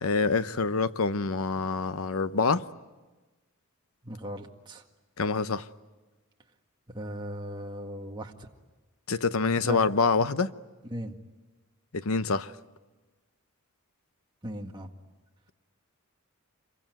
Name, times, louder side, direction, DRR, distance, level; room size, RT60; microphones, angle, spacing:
voice 1, 0.0-2.6 5.2-5.7 9.1-10.5 11.9-12.5, left 4 dB, 80° left, 0.8 m, -26 dB
voice 2, 4.0-4.8 6.9-8.3 9.6-9.8 10.9-11.2 14.4-14.9, equal, 20° right, 1.9 m, -37 dB
27.0 x 23.5 x 9.3 m
head